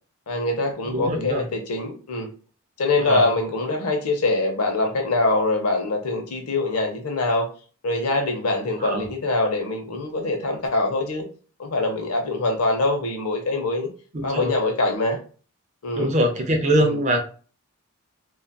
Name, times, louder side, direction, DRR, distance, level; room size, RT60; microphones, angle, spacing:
voice 1, 0.3-2.3 2.8-7.5 7.8-11.3 11.6-13.9 14.2-15.2 15.8-16.1 16.8-16.9, left 2 dB, 85° left, 0.7 m, -24 dB
voice 2, 0.9-1.5 3.0-3.3 8.8-9.1 14.1-14.6 16.0-17.2, right 1 dB, 30° right, 0.4 m, -23 dB
2.7 x 2.3 x 2.2 m
head